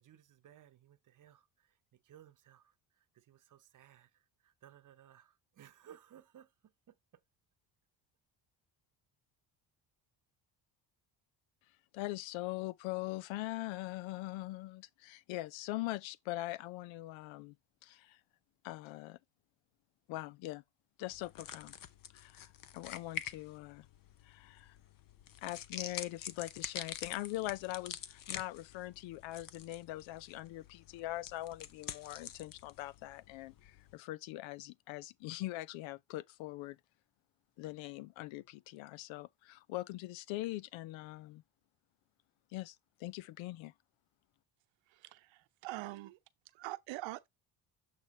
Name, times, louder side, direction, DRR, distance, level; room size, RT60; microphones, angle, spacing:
voice 1, 0.0-6.9, right 10 dB, 45° right, 1.0 m, -60 dB
voice 2, 11.9-17.6 17.8-18.2 18.6-19.2 20.1-20.6 21.0-21.7 22.1-23.9 24.2-24.8 25.4-36.8 37.6-41.4 42.5-43.7, left 17 dB, 80° left, 0.6 m, -42 dB
sound 1, 21.1-34.0, left 9 dB, 45° left, 0.8 m, -47 dB
voice 3, 44.9-46.2 46.5-47.3, right 18 dB, 75° right, 0.8 m, -44 dB
8.3 x 4.6 x 3.2 m
cardioid pair, 105°, 45 cm